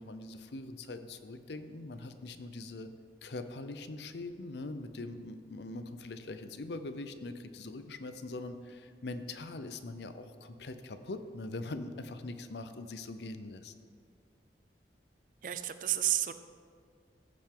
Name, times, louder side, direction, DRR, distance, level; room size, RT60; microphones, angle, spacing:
voice 1, 0.0-2.9 3.2-13.7, left 2 dB, 75° left, 10 dB, 0.6 m, -42 dB
voice 2, 15.4-16.3, right 13 dB, 50° right, 11 dB, 0.4 m, -31 dB
14.0 x 7.4 x 3.8 m, 2.1 s
head